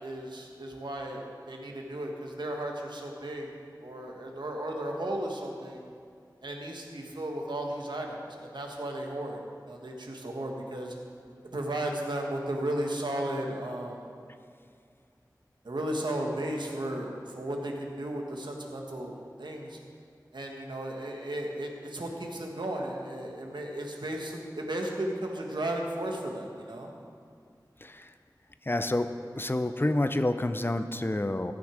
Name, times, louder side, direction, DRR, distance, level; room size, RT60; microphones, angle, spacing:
voice 1, 0.0-3.5 3.8-5.8 6.4-9.4 9.7-10.9 11.5-14.1 15.6-19.8 20.3-26.9, right 1 dB, 85° right, 1 dB, 1.3 m, -35 dB
voice 2, 27.8-28.1 28.6-29.1 29.4-31.5, left 1 dB, 30° left, 9 dB, 0.5 m, -28 dB
14.0 x 6.1 x 4.9 m, 2.2 s
wide cardioid pair, 40°, 7 cm